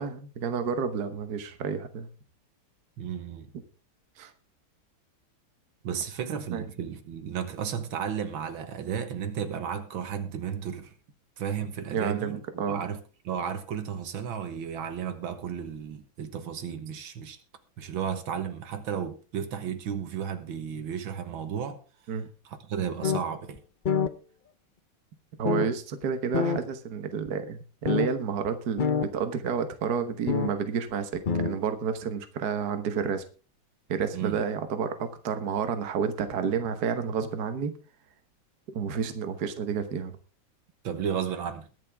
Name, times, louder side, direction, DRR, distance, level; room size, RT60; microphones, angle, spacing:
voice 1, 0.0-2.1 4.2-4.3 6.5-6.7 11.6-12.8 22.1-22.3 25.4-33.2 33.9-37.7 38.7-40.1, right 6 dB, 55° right, 1.6 m, -30 dB
voice 2, 3.0-3.5 5.8-10.9 11.4-13.0 13.3-17.4 17.8-21.8 22.5-23.6 34.1-34.4 40.8-41.7, right 8 dB, 80° right, 2.0 m, -33 dB
sound 1, 23.0-23.2 23.6-23.7 23.8-24.1 25.4-25.7 26.3-26.6 27.3-27.4 27.9-28.1 28.5-28.6 28.8-29.1 30.3-30.5 31.1-31.6, left 6 dB, 70° left, 0.4 m, -26 dB
22.0 x 7.4 x 3.5 m
omnidirectional pair, 2.2 m